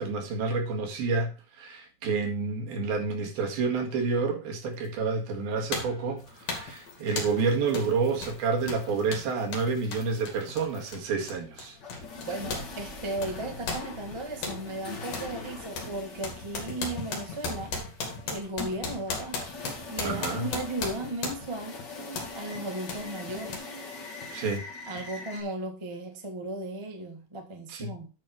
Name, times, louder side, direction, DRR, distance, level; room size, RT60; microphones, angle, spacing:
voice 1, 0.0-11.8 20.0-20.5 24.3-24.6 27.7-27.9, right 4 dB, 70° right, 3.7 m, -29 dB
sound 1, 4.9-5.0 5.7-6.0 6.5-6.8 7.2-7.4 7.7-7.9 8.2-12.7 13.0-14.6 15.1-15.3 15.8-21.6 22.2-22.4 22.9-23.0 23.5-23.6, left 3 dB, 60° left, 3.8 m, -36 dB
sound 2, 6.2-25.4, left 3 dB, 40° left, 1.8 m, -43 dB
voice 2, 12.1-17.8 18.2-19.4 19.9-21.8 22.3-23.6 24.8-28.1, right 2 dB, 50° right, 0.3 m, -36 dB
10.5 x 6.2 x 4.7 m
omnidirectional pair, 4.5 m